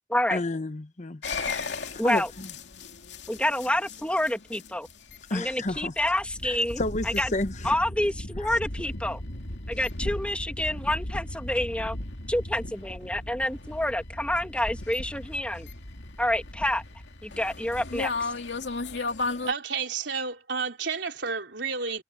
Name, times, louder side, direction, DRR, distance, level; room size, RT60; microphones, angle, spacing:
voice 1, 0.3-1.2 1.8-2.2 5.3-5.9 6.4-7.8 8.4-8.6, left 2 dB, 45° left, 1.0 m, -31 dB
sound 1, 1.2-19.5, left 2 dB, 80° left, 2.4 m, -36 dB
voice 2, 2.0-2.3 3.3-4.9 5.3-7.3 7.6-9.2 9.7-12.0 12.3-15.7 16.2-16.8 17.2-18.3, left 1 dB, 5° left, 2.4 m, -28 dB
voice 3, 19.5-22.0, right 5 dB, 85° right, 3.4 m, -31 dB
head